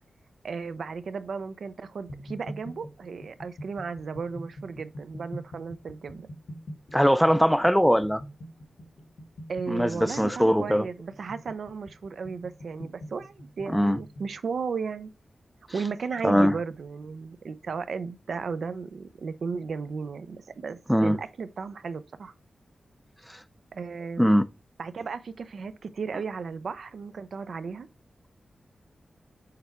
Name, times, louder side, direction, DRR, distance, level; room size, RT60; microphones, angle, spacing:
voice 1, 0.4-6.3 9.5-15.1 15.7-22.3 23.7-24.3 24.8-27.9, right 5 dB, 70° right, 0.5 m, -35 dB
sound 1, 2.1-14.4, equal, 60° left, 1.1 m, -44 dB
voice 2, 6.9-8.2 9.7-10.8 13.7-14.0 16.2-16.5 20.9-21.2 24.2-24.4, equal, ahead, 0.4 m, -21 dB
6.7 x 3.5 x 4.2 m
wide cardioid pair, 120°, 0 cm